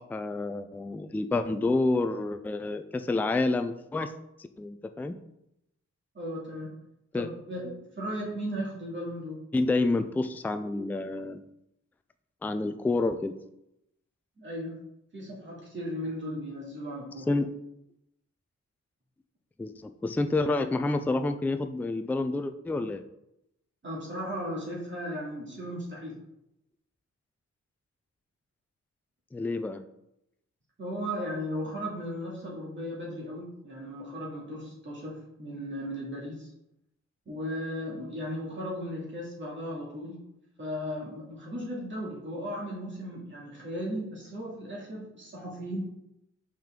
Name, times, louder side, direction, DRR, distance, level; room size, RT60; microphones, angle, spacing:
voice 1, 0.0-4.1 4.6-5.2 7.1-7.3 9.5-11.4 12.4-13.4 17.3-17.5 19.6-23.0 29.3-29.8, left 2 dB, 5° left, 9 dB, 0.3 m, -28 dB
voice 2, 6.1-6.7 7.1-9.4 14.4-14.8 15.1-17.3 23.8-26.2 30.8-36.5 37.3-40.2 40.6-45.8, equal, 40° right, -4 dB, 2.4 m, -36 dB
5.6 x 5.2 x 3.7 m, 0.83 s
cardioid pair, 100°, 30 cm